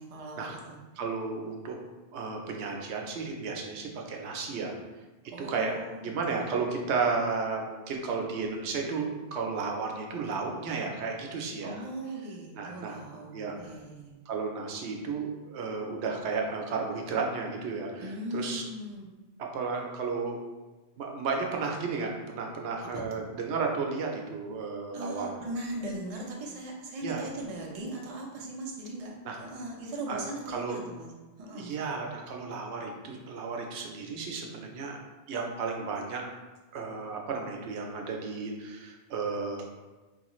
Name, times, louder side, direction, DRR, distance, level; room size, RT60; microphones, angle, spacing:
voice 1, 0.0-0.8 5.3-6.6 11.6-14.2 18.0-19.1 22.8-23.3 24.9-31.1 31.4-31.7, right 1 dB, 40° right, -1 dB, 0.6 m, -39 dB
voice 2, 1.0-1.8 2.1-4.8 5.4-5.7 6.0-11.8 12.5-13.0 13.3-13.6 14.3-18.6 19.4-20.4 21.0-25.3 27.0-27.2 29.3-29.4 30.1-30.2 30.5-30.8 31.5-35.0 35.3-36.2 36.7-39.7, right 4 dB, 85° right, 1 dB, 0.9 m, -33 dB
4.3 x 2.3 x 3.0 m, 1.2 s
omnidirectional pair, 1.1 m